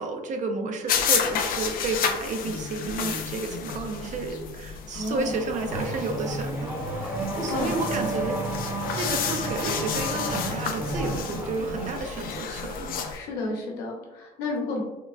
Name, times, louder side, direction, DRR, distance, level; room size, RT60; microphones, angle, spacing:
voice 1, 0.0-7.1 7.4-12.9, right 3 dB, 45° right, 5 dB, 0.5 m, -31 dB
sound 1, 0.9-13.2, left 7 dB, 55° left, 0.4 m, -31 dB
voice 2, 4.9-5.4 7.5-7.7 9.0-9.1 13.1-14.8, left 2 dB, 90° left, 0 dB, 0.8 m, -31 dB
Race car auto racing / Accelerating revving vroom, 5.2-12.4, right 1 dB, 15° right, 0.7 m, -32 dB
3.7 x 2.0 x 2.3 m, 1.1 s
cardioid pair, 110°, 17 cm